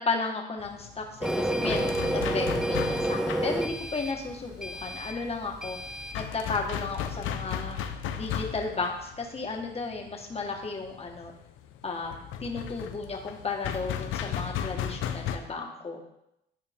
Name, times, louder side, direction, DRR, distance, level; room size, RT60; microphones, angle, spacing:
voice 1, 0.0-5.8 6.1-7.8 8.1-11.3 11.8-16.0, left 4 dB, 30° left, 1 dB, 1.4 m, -34 dB
sound 1, 0.6-15.4, left 9 dB, 85° left, 0.6 m, -36 dB
Printer, 1.2-6.2, right 1 dB, 5° right, 0.5 m, -30 dB
11.0 x 4.5 x 3.6 m, 0.83 s
cardioid pair, 90°, 20 cm